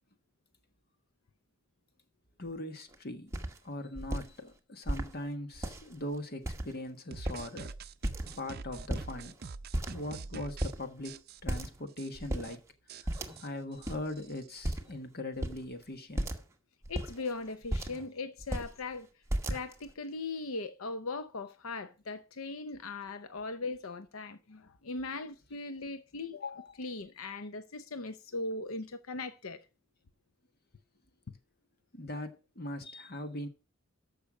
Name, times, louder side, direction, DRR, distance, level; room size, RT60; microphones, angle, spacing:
voice 1, 2.4-3.3 3.6-7.7 8.4-9.3 9.9-12.6 12.9-13.1 13.4-16.3 31.9-33.5, left 1 dB, 50° left, 1.4 m, -40 dB
sound 1, 2.9-3.0 3.3-3.6 4.0-4.3 4.9-5.1 5.5-6.0 6.5-6.9 7.1-7.6 8.0-8.5 8.8-9.4 9.7-10.3 10.6-10.8 11.5-11.8 12.1-12.5 13.1-13.6 13.8-14.0 14.6-15.0 15.4-15.6 16.2-16.5 16.8-18.1 18.4-18.7 19.3-19.9, right 1 dB, 15° right, 1.2 m, -35 dB
sound 2, 7.1-10.7 11.1-11.6 12.0-12.1 12.3-12.6 12.9-14.6, right 4 dB, 50° right, 0.5 m, -45 dB
voice 2, 16.9-19.1 19.5-29.6, left 3 dB, 85° left, 0.7 m, -39 dB
13.5 x 5.8 x 4.9 m
head